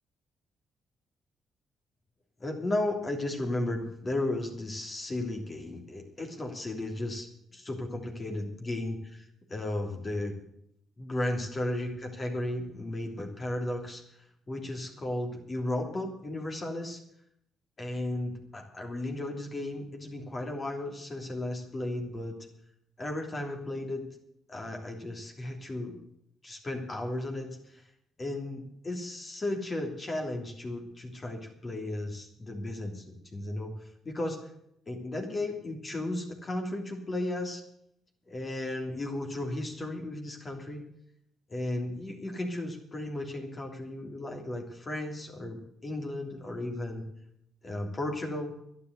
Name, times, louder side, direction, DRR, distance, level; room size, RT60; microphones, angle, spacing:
voice 1, 2.4-7.3 7.5-10.4 11.0-14.0 14.5-17.0 17.8-22.4 23.0-24.1 24.5-26.0 26.4-27.9 28.2-34.4 34.9-37.6 38.3-40.9 41.5-47.0 47.6-48.6, left 1 dB, 30° left, 2 dB, 3.1 m, -35 dB
11.5 x 10.5 x 8.1 m, 0.73 s
cardioid pair, 90°, 0 cm